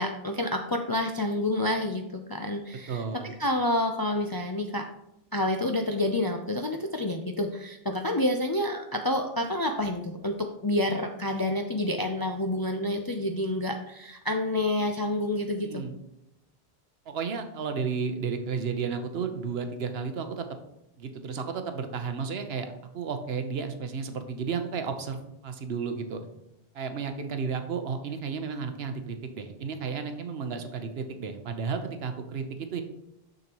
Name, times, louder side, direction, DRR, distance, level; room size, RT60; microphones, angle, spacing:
voice 1, 0.0-4.9 5.3-15.8, left 1 dB, 40° left, 4 dB, 0.3 m, -28 dB
voice 2, 2.9-3.3 15.6-16.0 17.1-20.5 21.0-26.2 26.7-32.8, right 5 dB, 75° right, 7 dB, 1.0 m, -33 dB
6.8 x 6.5 x 2.9 m, 0.85 s
omnidirectional pair, 1.1 m